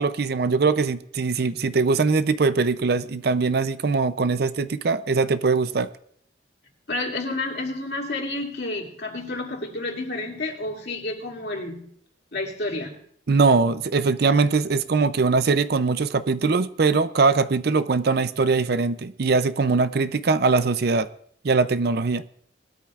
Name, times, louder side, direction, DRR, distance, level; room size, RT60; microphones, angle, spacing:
voice 1, 0.0-5.9 13.3-21.1 21.4-22.2, right 4 dB, 55° right, 0.5 m, -21 dB
voice 2, 6.9-11.9 12.3-13.0, left 2 dB, 60° left, 2.5 m, -30 dB
20.5 x 13.0 x 2.4 m
head